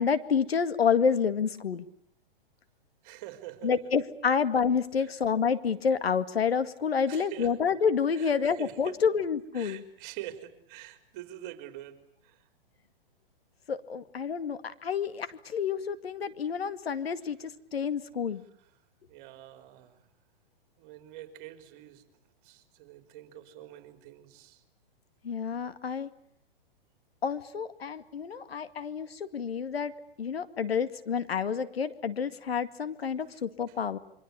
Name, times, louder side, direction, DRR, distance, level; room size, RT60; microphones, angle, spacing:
voice 1, 0.0-1.9 3.6-9.8 13.7-18.4 25.2-26.1 27.2-29.9 30.2-34.0, left 6 dB, 85° left, 2.2 m, -29 dB
voice 2, 3.0-3.7 5.0-5.1 7.1-7.5 8.1-9.0 9.5-12.4 19.1-20.0 20.8-22.0 22.4-24.6 33.7-33.8, right 14 dB, 40° right, 4.1 m, -45 dB
27.5 x 24.5 x 8.3 m
hypercardioid pair, 125°, 30 cm